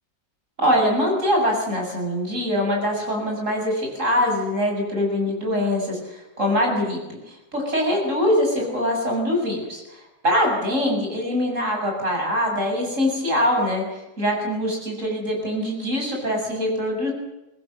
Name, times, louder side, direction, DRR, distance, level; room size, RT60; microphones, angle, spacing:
voice 1, 0.6-6.0 6.4-7.0 7.5-9.8 10.2-13.8 14.2-17.1, left 1 dB, 50° right, 0 dB, 8.0 m, -23 dB
24.0 x 19.0 x 7.8 m, 0.98 s
omnidirectional pair, 1.7 m